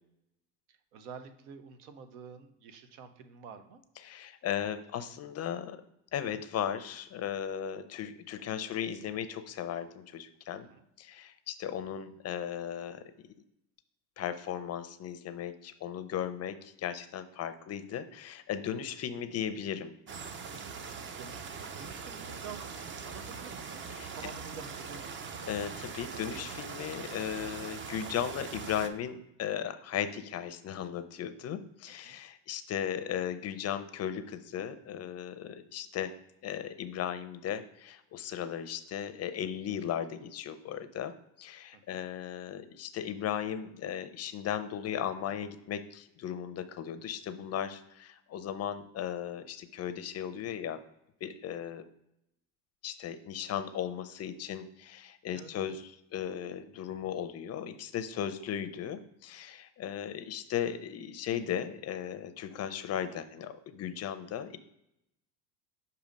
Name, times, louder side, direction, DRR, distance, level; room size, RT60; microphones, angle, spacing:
voice 1, 0.7-3.8 10.7-10.9 20.8-25.6 32.0-32.2 41.7-42.0 55.3-55.8, right 6 dB, 80° right, 9 dB, 0.9 m, -49 dB
voice 2, 4.0-5.8 6.1-10.7 11.0-13.0 14.2-19.9 24.0-24.1 25.5-36.1 36.4-41.1 41.4-50.8 51.2-51.8 52.8-64.6, left 9 dB, 35° left, 11 dB, 0.5 m, -36 dB
sound 1, 20.1-28.9, right 5 dB, 25° right, 0.4 m, -42 dB
6.6 x 2.8 x 5.2 m, 0.82 s
supercardioid pair, 105°, 45 cm